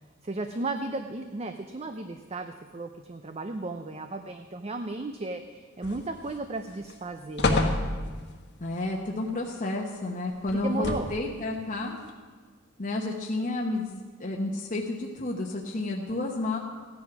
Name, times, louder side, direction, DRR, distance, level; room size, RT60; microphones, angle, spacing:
voice 1, 0.2-7.7 10.0-10.1 10.6-11.1, right 2 dB, 30° right, 7 dB, 0.6 m, -35 dB
sound 1, 5.8-6.4 6.8-6.9 7.4-8.4 10.5-11.3 12.1-12.2, left 2 dB, 55° left, 1.5 m, -28 dB
voice 2, 8.6-12.0 12.8-16.6, left 2 dB, 40° left, -1 dB, 1.1 m, -31 dB
15.5 x 11.0 x 6.1 m, 1.5 s
head